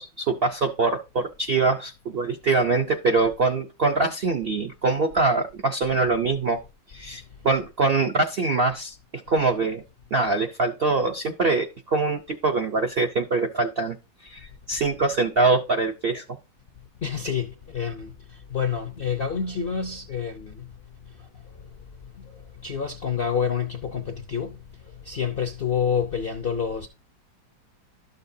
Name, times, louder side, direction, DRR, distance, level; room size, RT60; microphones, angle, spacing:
voice 1, 0.0-6.6 6.9-8.9 9.3-9.8 10.1-14.0 14.2-16.2, right 3 dB, 60° right, 0.6 m, -23 dB
voice 2, 17.0-18.1 18.5-20.7 22.6-24.6 25.0-26.9, left 7 dB, 55° left, 0.6 m, -28 dB
12.5 x 6.6 x 2.7 m
omnidirectional pair, 1.9 m